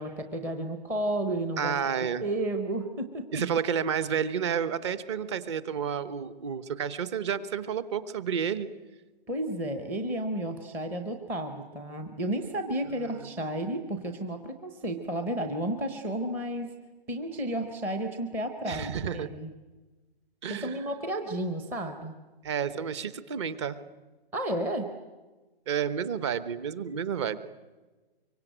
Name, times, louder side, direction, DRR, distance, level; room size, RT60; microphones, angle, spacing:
voice 1, 0.0-1.7 2.2-3.4 9.3-16.7 17.1-19.5 20.5-22.1 24.3-24.9, right 1 dB, 5° right, 5 dB, 0.8 m, -32 dB
voice 2, 1.6-2.2 3.3-8.7 13.0-13.3 18.6-19.3 20.4-20.8 22.4-23.8 25.7-27.4, right 7 dB, 30° right, 14 dB, 1.0 m, -30 dB
24.5 x 24.0 x 9.1 m, 1.2 s
hypercardioid pair, 165°, 31 cm